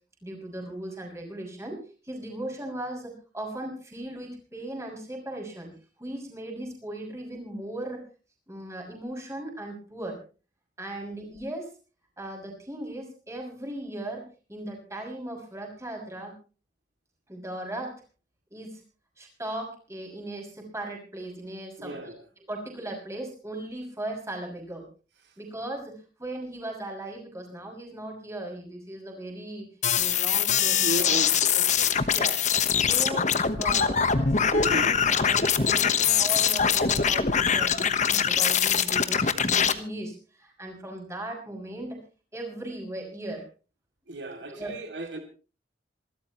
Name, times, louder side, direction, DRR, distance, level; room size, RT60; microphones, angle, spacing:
voice 1, 0.2-5.7 6.0-8.0 8.5-10.2 10.8-11.7 12.2-16.3 17.3-18.0 18.5-18.8 19.2-22.1 22.5-24.8 25.4-29.7 30.0-31.1 31.5-32.4 32.8-33.3 33.6-42.0 42.3-43.4 44.5-44.7, right 1 dB, 15° right, 1 dB, 6.4 m, -38 dB
voice 2, 21.8-22.2 30.8-32.0 34.5-35.0 44.1-45.2, right 1 dB, 75° right, 4 dB, 2.6 m, -34 dB
sound 1, 29.8-39.7, left 7 dB, 40° left, 1.2 m, -23 dB
27.5 x 13.0 x 3.1 m, 0.35 s
head